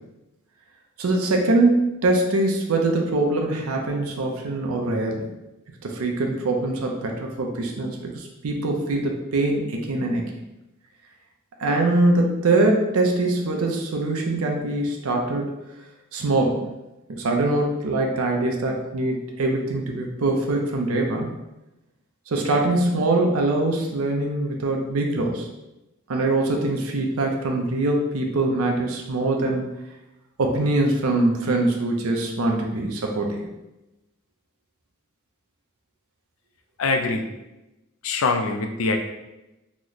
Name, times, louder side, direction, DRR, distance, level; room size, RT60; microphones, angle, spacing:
voice 1, 1.0-5.3 5.8-10.2 11.6-15.5 16.1-16.6 17.1-21.3 22.3-25.5 26.1-29.7 30.4-33.5, right 2 dB, 85° right, 1 dB, 0.5 m, -23 dB
voice 2, 36.8-37.2 38.0-39.0, left 3 dB, 70° left, 5 dB, 0.4 m, -23 dB
3.0 x 2.1 x 3.8 m, 0.97 s
head